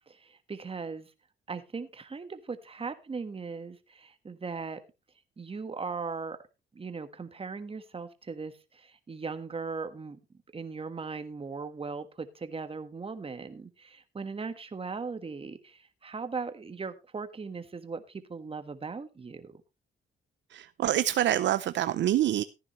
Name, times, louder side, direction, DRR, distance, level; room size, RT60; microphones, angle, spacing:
voice 1, 0.1-1.1 1.5-4.8 5.4-6.4 6.7-10.2 10.5-19.6, right 4 dB, 30° right, 1.5 m, -38 dB
voice 2, 20.5-22.4, right 12 dB, 65° right, 0.6 m, -26 dB
15.0 x 9.7 x 3.1 m
cardioid pair, 90°, 20 cm